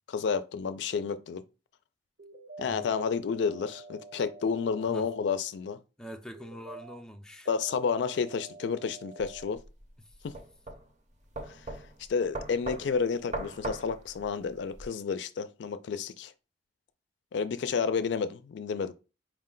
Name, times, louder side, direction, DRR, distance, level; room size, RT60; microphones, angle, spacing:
voice 1, 0.1-1.4 2.6-5.8 7.5-9.6 10.2-10.3 12.1-16.3 17.3-18.9, left 5 dB, 70° left, 0.3 m, -30 dB
sound 1, 2.2-2.8 3.3-5.3 6.3-7.0 7.4-9.4, right 3 dB, 80° right, 1.5 m, -48 dB
voice 2, 6.0-7.5 10.0-10.2, equal, 5° left, 0.4 m, -45 dB
sound 2, 9.2-14.9, right 2 dB, 40° right, 0.7 m, -40 dB
4.6 x 2.1 x 3.7 m
head